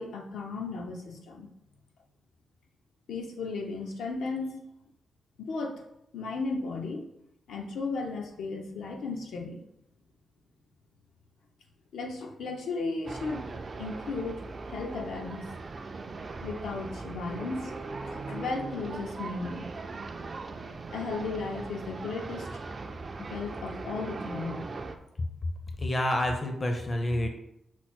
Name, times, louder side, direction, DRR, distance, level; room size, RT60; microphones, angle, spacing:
voice 1, 0.0-1.5 3.1-4.6 5.4-5.8 6.1-7.0 7.5-9.6 11.9-13.5 13.8-14.4 14.7-15.5 16.4-17.8 18.1-19.7 20.9-22.5 23.2-24.7, left 3 dB, 85° left, 2 dB, 0.7 m, -35 dB
sound 1, 13.0-25.0, right 3 dB, 35° right, 0.3 m, -39 dB
voice 2, 25.8-27.3, left 1 dB, 25° left, 4 dB, 0.5 m, -28 dB
5.9 x 2.0 x 4.3 m, 0.79 s
wide cardioid pair, 155°, 0 cm